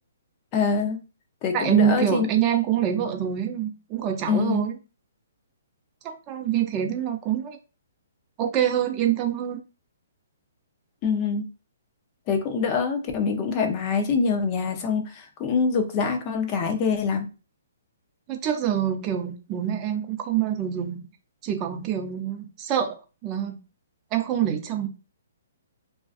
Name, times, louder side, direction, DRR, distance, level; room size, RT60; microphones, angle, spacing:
voice 1, 0.5-1.0 1.4-2.3 4.3-4.7 11.0-11.5 12.3-17.3, left 5 dB, 30° left, 0.5 m, -25 dB
voice 2, 1.5-4.8 6.0-7.6 8.4-9.6 18.3-21.1 21.4-23.0 23.2-23.6 24.1-24.9, right 10 dB, 25° right, 0.5 m, -25 dB
2.4 x 2.2 x 2.4 m
hypercardioid pair, 150°, 0 cm